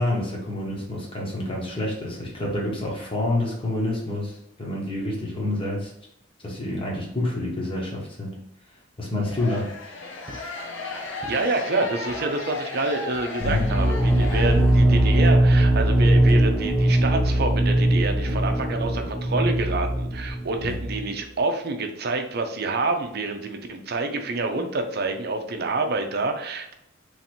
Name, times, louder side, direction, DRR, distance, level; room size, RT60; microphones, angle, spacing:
voice 1, 0.0-5.9 6.4-8.4 9.0-10.0 13.4-13.6 20.6-20.8, left 1 dB, 30° left, -3 dB, 1.1 m, -28 dB
sound 1, 9.2-15.1, left 3 dB, 75° left, 0.8 m, -35 dB
sound 2, 9.3-9.7 10.3-10.4 11.2-11.4 12.1-12.3 13.1-13.3 14.2-14.3 15.2-15.4 16.3-16.7 17.3-17.4 18.3-18.5, equal, 30° right, 1.4 m, -42 dB
voice 2, 11.3-26.7, right 3 dB, 55° right, 5 dB, 0.5 m, -27 dB
sound 3, 13.4-21.1, right 1 dB, 5° left, 0.4 m, -20 dB
3.2 x 2.8 x 4.3 m, 0.80 s
head